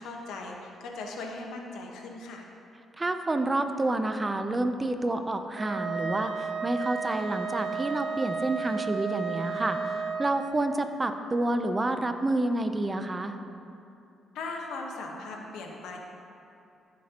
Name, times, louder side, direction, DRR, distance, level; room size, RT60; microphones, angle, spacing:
voice 1, 0.0-2.5 14.3-16.0, left 3 dB, 85° left, 1 dB, 1.2 m, -38 dB
voice 2, 3.0-9.8 10.2-13.3, right 2 dB, 20° right, 8 dB, 0.6 m, -29 dB
Wind instrument woodwind instrument, 5.5-10.4, right 5 dB, 85° right, 1.7 m, -33 dB
14.5 x 7.4 x 2.9 m, 2.7 s
cardioid pair, 90°, 0 cm